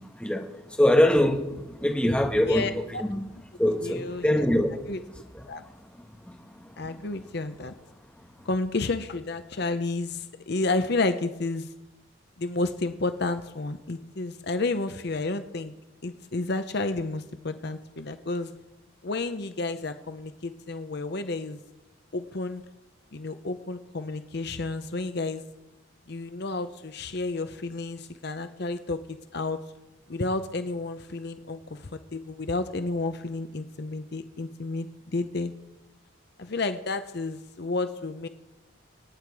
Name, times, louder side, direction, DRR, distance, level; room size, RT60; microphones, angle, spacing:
voice 1, 0.8-2.7 3.1-3.2 3.6-4.8, left 1 dB, 5° left, 1.5 m, -22 dB
voice 2, 2.5-3.2 3.8-4.5 4.9-5.0 5.5-5.6 6.8-7.7 8.5-11.7 12.4-15.7 16.0-18.5 19.0-21.6 22.1-22.6 23.1-25.4 26.1-29.6 30.1-35.5 36.4-38.3, left 3 dB, 55° left, 0.8 m, -31 dB
26.0 x 9.5 x 4.8 m
head